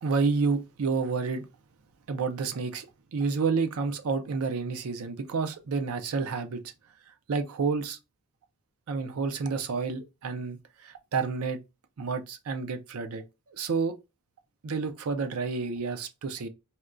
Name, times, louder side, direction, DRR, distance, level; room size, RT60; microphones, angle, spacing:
voice 1, 0.0-1.5 2.1-2.9 3.1-6.6 7.3-8.0 8.9-10.6 10.8-11.6 12.0-13.2 13.6-13.9 14.6-16.5, right 4 dB, 80° right, 0.5 m, -29 dB
4.3 x 2.2 x 2.4 m
head